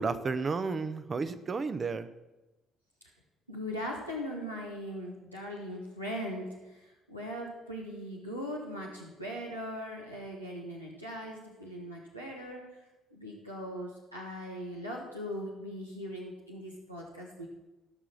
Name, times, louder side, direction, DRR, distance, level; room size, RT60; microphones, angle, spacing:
voice 1, 0.0-2.1, right 4 dB, 35° right, 12 dB, 0.8 m, -32 dB
voice 2, 3.5-12.6 13.1-17.5, equal, 90° right, -4 dB, 1.4 m, -40 dB
14.5 x 6.2 x 6.1 m, 1.1 s
figure-of-eight pair, 50°, 0 cm